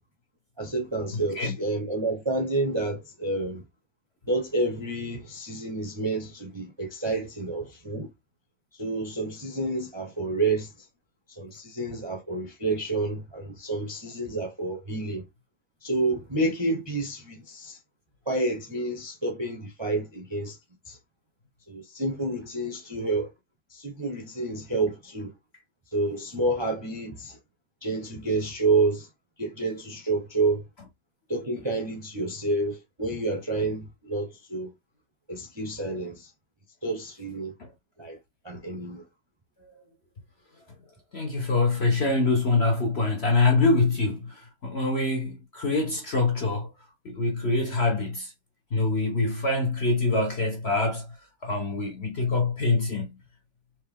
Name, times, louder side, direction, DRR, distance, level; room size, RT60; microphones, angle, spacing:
voice 1, 0.6-3.6 4.3-8.1 8.8-10.7 11.3-15.2 15.8-17.8 18.3-20.6 20.9-21.0 21.7-23.3 23.7-25.3 25.9-27.4 27.8-29.1 29.4-30.6 31.3-34.7 35.3-36.3 36.8-37.5 38.0-38.2 38.4-39.0, right 2 dB, 25° right, 0.6 m, -29 dB
voice 2, 1.1-1.6 37.6-37.7 41.1-46.7 47.0-48.3 48.7-51.2 51.4-53.2, left 3 dB, 50° left, 0.8 m, -25 dB
4.5 x 2.9 x 3.5 m
omnidirectional pair, 2.0 m